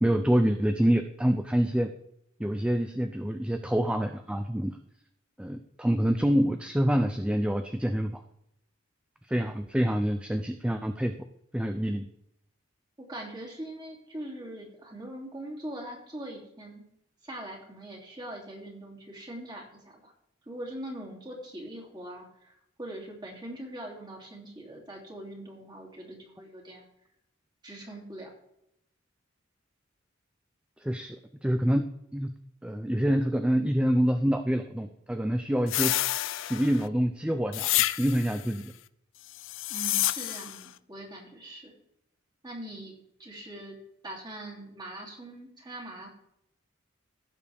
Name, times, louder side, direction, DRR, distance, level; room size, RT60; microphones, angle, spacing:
voice 1, 0.0-1.9 2.4-4.7 5.4-8.2 9.3-11.1 11.5-12.1 30.8-31.8 32.1-32.3 32.6-35.9 36.4-38.7, equal, 5° right, 7 dB, 0.4 m, -26 dB
voice 2, 13.0-16.8 17.2-20.1 20.5-26.8 27.6-28.3 39.7-41.7 42.4-42.9 43.2-43.8 44.0-46.1, right 1 dB, 20° right, -1 dB, 2.7 m, -42 dB
sound 1, 35.7-36.9 37.5-38.4 39.4-40.6, left 15 dB, 70° left, 0.4 m, -29 dB
16.0 x 7.1 x 3.5 m, 0.78 s
head